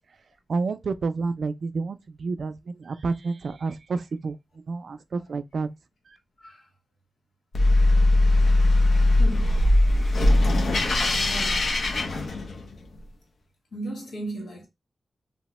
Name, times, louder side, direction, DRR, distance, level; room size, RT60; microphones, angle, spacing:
voice 1, 0.5-4.4 4.7-5.7, right 4 dB, 70° right, 0.3 m, -29 dB
sound 1, 7.5-12.8, left 2 dB, 75° left, 0.6 m, -20 dB
voice 2, 9.2-9.5 11.1-11.7 13.7-14.7, right 1 dB, 90° left, 1.3 m, -36 dB
2.8 x 2.1 x 3.0 m
wide cardioid pair, 90°, 0 cm